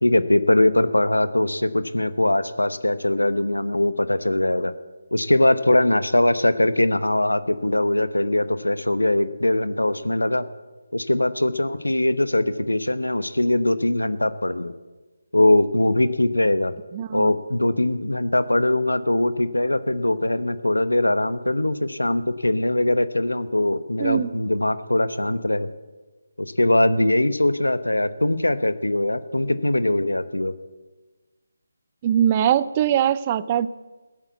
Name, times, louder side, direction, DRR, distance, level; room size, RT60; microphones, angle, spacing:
voice 1, 0.0-4.7 5.1-10.4 10.9-14.7 15.3-16.7 17.1-25.7 26.4-30.5, left 1 dB, 90° left, 13 dB, 1.0 m, -21 dB
voice 2, 16.9-17.3 24.0-24.3 32.0-33.7, right 10 dB, 25° right, 17 dB, 0.5 m, -21 dB
16.0 x 9.0 x 8.3 m, 1.3 s
figure-of-eight pair, 155°, 0 cm